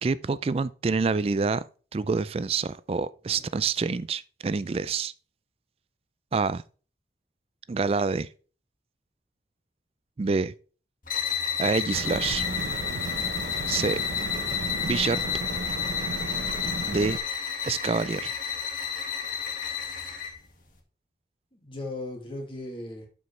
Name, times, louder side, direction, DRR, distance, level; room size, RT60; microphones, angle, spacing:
voice 1, 0.0-1.6 1.9-5.1 6.3-6.6 7.7-8.3 10.2-10.5 11.6-12.4 13.7-14.0 14.8-15.2 16.8-17.2 17.6-18.3, right 4 dB, 35° right, 0.3 m, -27 dB
sound 1, 11.0-20.4, left 7 dB, 50° left, 1.7 m, -31 dB
sound 2, 11.9-17.2, right 2 dB, 80° right, 0.9 m, -35 dB
voice 2, 19.6-20.1 21.5-23.1, left 2 dB, 30° left, 2.1 m, -38 dB
11.5 x 5.3 x 3.2 m
head